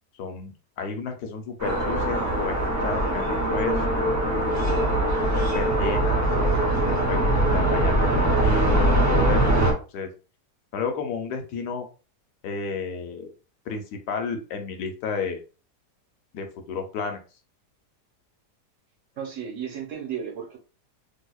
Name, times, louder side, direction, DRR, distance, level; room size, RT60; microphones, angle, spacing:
voice 1, 0.1-4.0 4.6-8.0 8.4-9.4 9.9-10.1 10.7-11.9 12.4-13.3 13.7-15.4 16.3-17.2, left 5 dB, 80° left, 5 dB, 1.3 m, -32 dB
sound 1, 1.6-9.7, right 1 dB, 20° right, 0.4 m, -22 dB
voice 2, 19.2-20.6, right 8 dB, 55° right, 0 dB, 1.2 m, -34 dB
3.6 x 2.7 x 2.3 m, 0.34 s
omnidirectional pair, 1.7 m